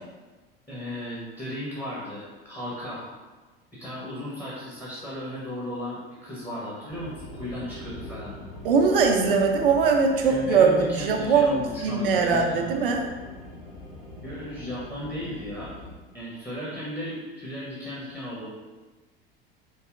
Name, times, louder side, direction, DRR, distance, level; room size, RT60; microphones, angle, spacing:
voice 1, 0.7-3.1 3.8-8.3 10.2-13.0 14.2-15.7 16.1-18.5, left 1 dB, 10° left, -8 dB, 1.0 m, -35 dB
sound 1, 6.9-15.9, left 2 dB, 50° left, 1.1 m, -42 dB
voice 2, 8.6-13.0, right 5 dB, 65° right, 3 dB, 0.6 m, -21 dB
4.6 x 2.7 x 2.5 m, 1.3 s
figure-of-eight pair, 75°, 30 cm